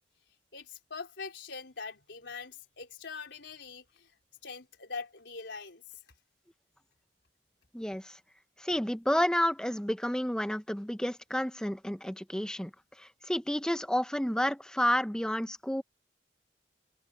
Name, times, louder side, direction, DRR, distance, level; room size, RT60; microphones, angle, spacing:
voice 1, 0.5-4.1 4.4-6.0, left 5 dB, 75° left, 4.0 m, -43 dB
voice 2, 7.7-8.2 8.6-12.7 13.0-15.8, left 1 dB, 5° left, 0.7 m, -30 dB
open air
head